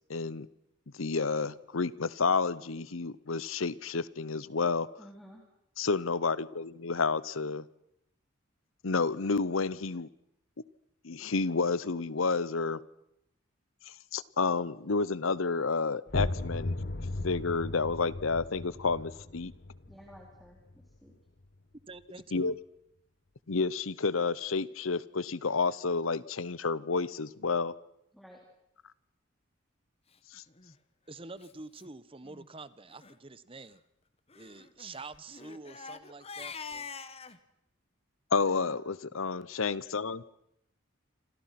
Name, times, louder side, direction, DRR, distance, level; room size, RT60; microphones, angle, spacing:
voice 1, 0.1-0.5 0.9-4.9 5.8-7.7 8.8-10.1 11.0-12.8 13.9-16.8 17.2-19.5 22.3-22.6 23.5-27.7 30.3-30.4 38.3-40.2, left 4 dB, 85° left, 19 dB, 0.9 m, -30 dB
voice 2, 5.0-5.4 19.9-21.1 28.1-28.4 38.4-38.8, equal, ahead, -1 dB, 3.6 m, -53 dB
sound 1, 16.1-21.6, left 2 dB, 55° left, 1.2 m, -37 dB
voice 3, 21.9-22.5 31.1-33.8 34.3-36.9, right 3 dB, 25° right, 15 dB, 1.0 m, -47 dB
Crying sobbing, 30.5-30.7 31.4-31.5 31.8-31.9 32.2-32.5 32.9-33.1 34.3-37.4, left 5 dB, 30° left, 1.3 m, -45 dB
28.0 x 27.0 x 6.0 m, 0.78 s
head